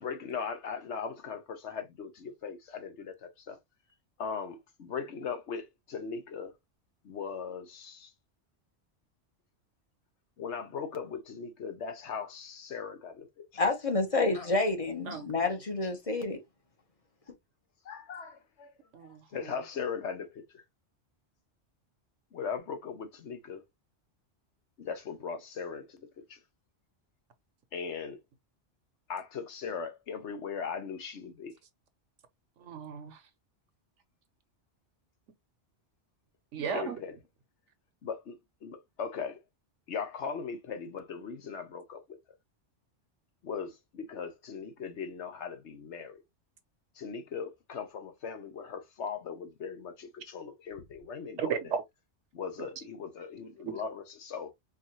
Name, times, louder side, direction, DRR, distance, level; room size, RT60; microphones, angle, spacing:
voice 1, 0.0-3.1 3.5-3.6 4.2-6.5 7.0-8.1 10.4-13.5 17.8-18.7 19.3-20.6 22.3-23.6 24.8-26.4 27.7-28.2 29.1-31.5 36.6-37.1 38.0-38.4 38.6-39.4 39.9-42.0 43.4-46.2 47.0-51.5 52.3-54.5, left 6 dB, 75° left, 1.2 m, -39 dB
voice 2, 13.6-16.4, left 3 dB, 35° left, 0.9 m, -29 dB
voice 3, 18.9-19.5 32.6-33.2 36.5-37.0 51.4-51.8 52.6-52.7 53.7-53.8, right 7 dB, 80° right, 1.2 m, -35 dB
4.7 x 2.5 x 2.9 m
omnidirectional pair, 1.2 m